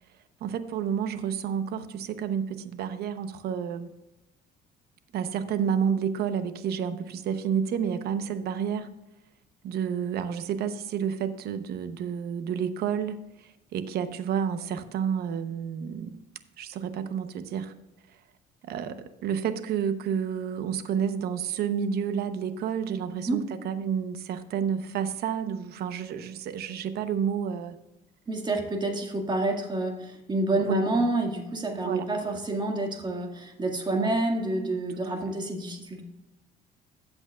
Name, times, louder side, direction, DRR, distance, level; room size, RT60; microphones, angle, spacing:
voice 1, 0.4-3.9 5.1-8.9 9.6-16.2 16.6-17.7 18.6-27.7 30.6-31.1 31.7-32.4 33.9-34.2 35.1-35.2, right 7 dB, 70° right, 11 dB, 0.9 m, -30 dB
voice 2, 23.1-23.4 28.3-36.0, right 2 dB, 25° right, 3 dB, 2.0 m, -28 dB
14.5 x 8.0 x 2.4 m, 0.96 s
cardioid pair, 110°, 17 cm